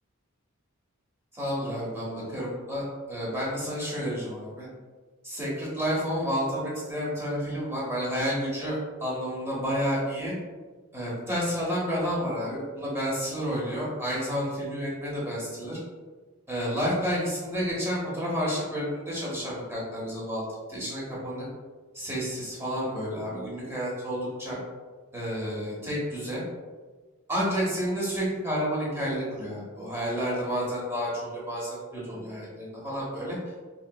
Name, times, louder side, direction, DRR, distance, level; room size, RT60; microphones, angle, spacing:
voice 1, 1.4-4.7 5.2-10.3 10.9-15.8 16.5-20.4 20.7-21.4 21.9-24.6 25.1-26.4 27.3-33.4, equal, 10° right, -6 dB, 1.0 m, -30 dB
3.6 x 2.8 x 2.2 m, 1.4 s
head